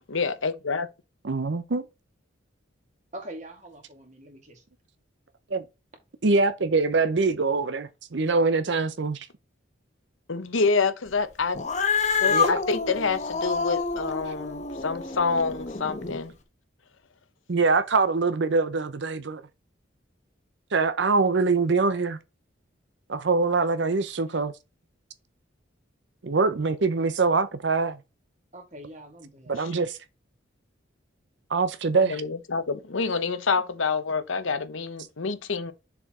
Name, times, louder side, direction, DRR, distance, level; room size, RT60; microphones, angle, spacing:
voice 1, 0.1-0.9 10.3-11.6 12.2-16.3 31.9-35.7, left 4 dB, 80° left, 0.8 m, -27 dB
voice 2, 1.2-1.9 5.5-5.6 6.2-9.3 12.2-12.6 17.5-19.4 20.7-22.2 23.1-24.5 26.2-28.0 29.5-30.0 31.5-32.2, right 4 dB, 65° right, 0.6 m, -24 dB
voice 3, 3.1-4.6 28.5-29.6, right 1 dB, 35° right, 2.0 m, -43 dB
Cat, 11.5-16.2, left 5 dB, 35° left, 1.0 m, -28 dB
6.9 x 4.5 x 3.7 m
head